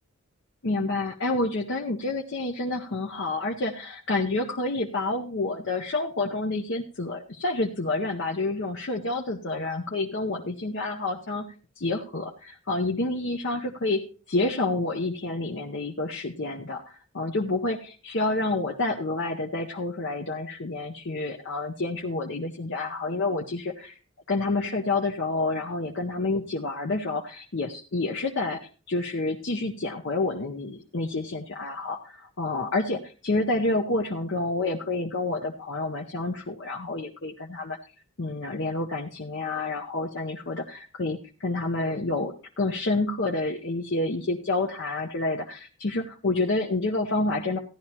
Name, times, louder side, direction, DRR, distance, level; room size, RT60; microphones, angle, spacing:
voice 1, 0.6-11.4 11.8-14.0 14.3-24.0 24.3-37.8 38.2-47.6, left 2 dB, 55° left, 1 dB, 0.7 m, -29 dB
15.5 x 11.0 x 2.9 m, 0.37 s
head